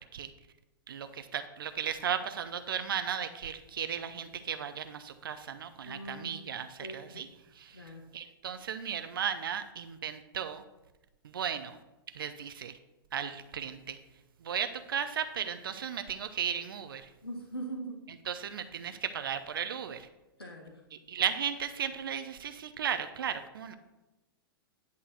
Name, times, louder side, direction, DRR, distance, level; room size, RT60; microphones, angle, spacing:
voice 1, 0.9-7.3 7.5-7.9 8.1-10.6 11.2-11.8 12.1-12.7 13.1-14.0 14.4-17.1 18.2-20.1 20.9-23.7, right 8 dB, 65° right, 10 dB, 0.7 m, -35 dB
voice 2, 5.9-6.4 6.8-7.2 7.7-8.1 17.2-18.0 20.4-20.8, right 1 dB, 90° left, 0 dB, 1.3 m, -41 dB
10.5 x 4.1 x 6.5 m, 1.0 s
figure-of-eight pair, 105°, 13 cm